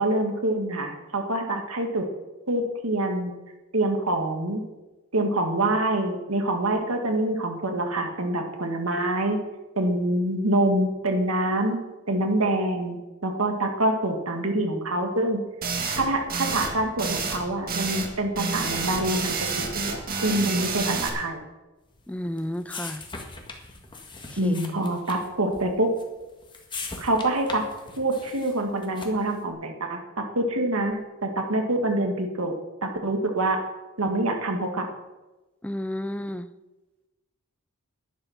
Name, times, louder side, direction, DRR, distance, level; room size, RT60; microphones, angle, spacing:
voice 1, 0.0-2.1 2.5-3.3 3.7-4.6 5.1-9.4 9.8-11.8 12.1-15.4 16.0-21.4 24.4-25.9 27.0-27.6 28.0-32.5 32.8-33.6 34.0-34.9, right 1 dB, 75° right, 3 dB, 1.9 m, -26 dB
sound 1, 15.6-16.0 16.3-16.7 17.0-17.4 17.7-18.1 18.4-21.1, right 4 dB, 45° right, 1.8 m, -29 dB
sound 2, 21.9-29.4, left 3 dB, 20° left, 1.7 m, -41 dB
voice 2, 22.1-23.0 24.3-24.6 35.6-36.5, left 1 dB, 5° left, 12 dB, 0.5 m, -32 dB
11.0 x 10.0 x 5.9 m, 1.1 s
head